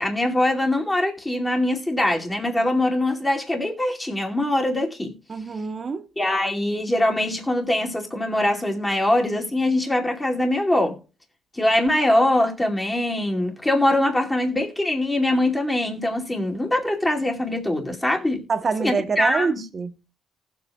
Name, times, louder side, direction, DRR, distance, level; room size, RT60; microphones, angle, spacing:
voice 1, 0.0-5.1 6.2-11.0 11.5-18.5 18.8-19.6, left 1 dB, 10° left, 2.5 m, -23 dB
voice 2, 5.3-6.1 18.5-19.9, right 5 dB, 35° right, 1.0 m, -25 dB
19.0 x 7.7 x 2.3 m
cardioid pair, 135°, 0 cm